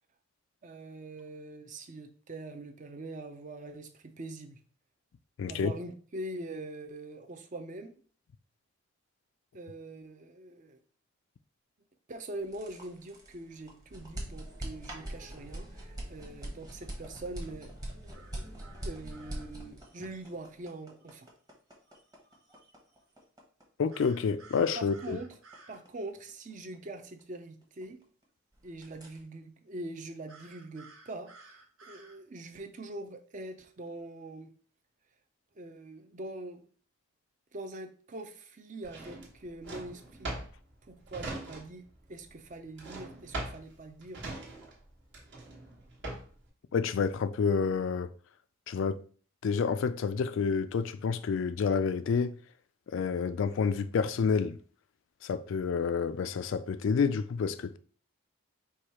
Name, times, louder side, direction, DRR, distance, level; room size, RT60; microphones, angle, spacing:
voice 1, 0.6-4.6 5.5-7.9 9.5-10.8 12.1-17.7 18.3-18.6 18.8-21.3 24.8-25.3 25.7-28.0 28.6-31.3 31.8-34.5 35.6-36.7 37.5-40.4 40.9-44.2, right 2 dB, 35° right, 0.5 m, -43 dB
voice 2, 5.4-5.7 23.8-25.2 46.7-48.1 48.7-49.0 49.4-52.4 52.9-54.6 55.2-57.8, left 5 dB, 60° left, 0.3 m, -29 dB
sound 1, 12.4-28.2 28.5-29.2, right 1 dB, 15° right, 0.9 m, -43 dB
sound 2, 18.1-19.5 23.9-25.8 30.3-32.2, right 3 dB, 75° right, 1.0 m, -55 dB
Drawer open or close, 38.8-42.0 42.2-46.5, right 2 dB, 55° right, 1.3 m, -41 dB
4.8 x 2.3 x 4.2 m
head